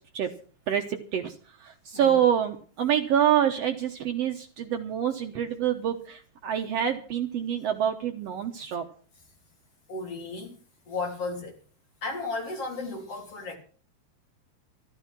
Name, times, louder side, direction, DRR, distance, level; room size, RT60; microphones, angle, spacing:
voice 1, 0.7-1.3 1.6-8.9, right 9 dB, 65° right, 1.7 m, -26 dB
voice 2, 9.9-10.6 10.9-11.6 12.0-13.6, left 3 dB, 45° left, 4.4 m, -34 dB
13.0 x 13.0 x 6.0 m
omnidirectional pair, 3.7 m